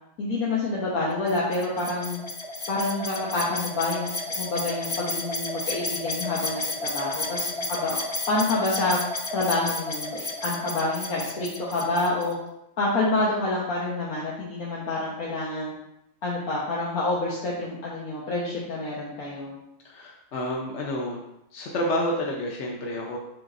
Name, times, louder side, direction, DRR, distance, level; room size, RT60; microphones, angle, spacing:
voice 1, 0.2-2.2 2.7-8.0 8.3-9.0 9.3-12.4 12.8-15.7 16.2-19.6, left 2 dB, 85° left, -7 dB, 1.7 m, -28 dB
sound 1, 1.3-12.3, left 2 dB, 25° left, 0.6 m, -32 dB
voice 2, 19.8-21.2 21.5-23.2, left 1 dB, 60° left, -1 dB, 1.0 m, -29 dB
7.4 x 6.0 x 2.6 m, 0.86 s
omnidirectional pair, 1.5 m